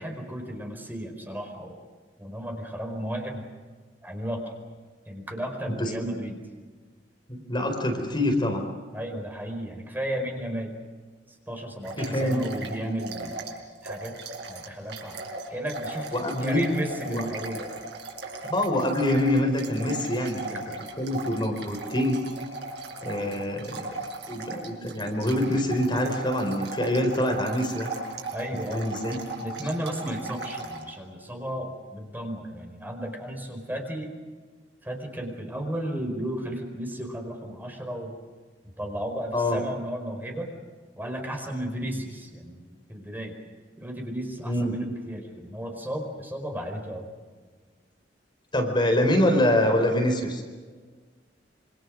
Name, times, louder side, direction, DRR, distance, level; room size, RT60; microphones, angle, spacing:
voice 1, 0.0-1.7 2.2-3.4 4.0-4.5 5.0-6.4 8.9-10.7 11.5-13.4 13.8-14.1 14.5-15.2 15.5-16.1 16.4-17.6 28.3-28.9 29.4-34.1 34.8-38.1 38.8-40.5 40.9-43.3 43.7-47.1, equal, 10° right, 3 dB, 4.7 m, -34 dB
voice 2, 5.7-6.1 7.3-8.6 12.0-12.4 16.1-16.7 17.1-17.3 18.4-20.6 21.0-22.2 23.0-23.9 24.3-27.9 28.6-29.2 39.3-39.6 44.4-44.7 48.5-50.4, left 1 dB, 25° left, 3 dB, 4.6 m, -25 dB
sound 1, 11.8-13.6 13.8-30.8, right 3 dB, 70° right, 5.8 m, -37 dB
27.5 x 26.5 x 6.4 m, 1.5 s
head